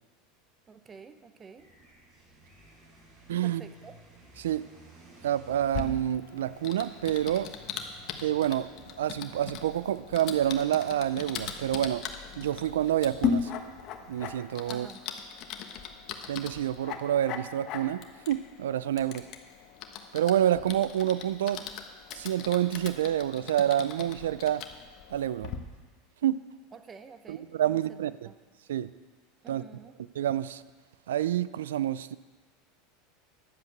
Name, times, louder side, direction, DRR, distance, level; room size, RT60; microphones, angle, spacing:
voice 1, 0.7-1.7 3.4-3.9 14.7-15.1 26.7-28.0 28.2-28.4 29.4-29.9, right 5 dB, 25° right, 9 dB, 0.9 m, -49 dB
sound 1, 1.6-14.4, right 1 dB, 40° right, 4.7 m, -56 dB
voice 2, 3.3-3.6 4.4-4.6 5.2-7.5 8.2-8.7 9.0-12.1 12.4-13.5 14.1-14.9 16.3-19.3 20.1-21.6 22.1-24.7 25.1-25.5 26.2-26.4 27.3-28.3 28.7-28.9 29.5-29.6 30.2-30.6 31.1-32.2, right 11 dB, 90° right, 17 dB, 0.4 m, -28 dB
Typing, 5.7-25.6, left 7 dB, 50° left, 1.2 m, -39 dB
10.5 x 7.5 x 7.9 m, 1.4 s
supercardioid pair, 110°, 0 cm